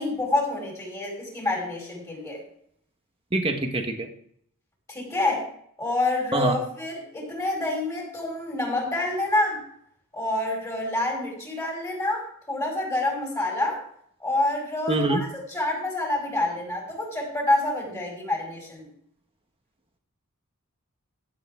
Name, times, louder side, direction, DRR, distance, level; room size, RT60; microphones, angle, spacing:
voice 1, 0.0-2.4 4.9-5.4 5.8-9.6 10.1-13.8 14.2-18.9, left 2 dB, 15° left, -1 dB, 5.2 m, -27 dB
voice 2, 3.3-4.1 6.3-6.6 14.9-15.2, right 2 dB, 25° right, 5 dB, 1.5 m, -24 dB
15.5 x 8.4 x 3.8 m, 0.65 s
head